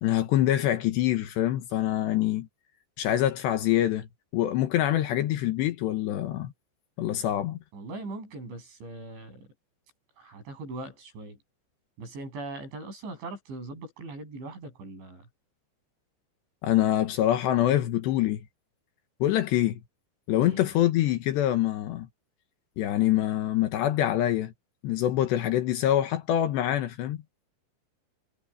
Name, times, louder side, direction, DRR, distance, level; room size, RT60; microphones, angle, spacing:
voice 1, 0.0-2.5 3.0-4.1 4.3-6.5 7.0-7.6 16.6-18.4 19.2-19.8 20.3-22.1 22.8-24.5 24.8-27.2, left 12 dB, 75° left, 3.3 m, -25 dB
voice 2, 7.7-9.5 10.2-11.4 12.0-15.3 20.4-20.7, right 2 dB, 75° right, 10.5 m, -40 dB
omnidirectional pair, 5.3 m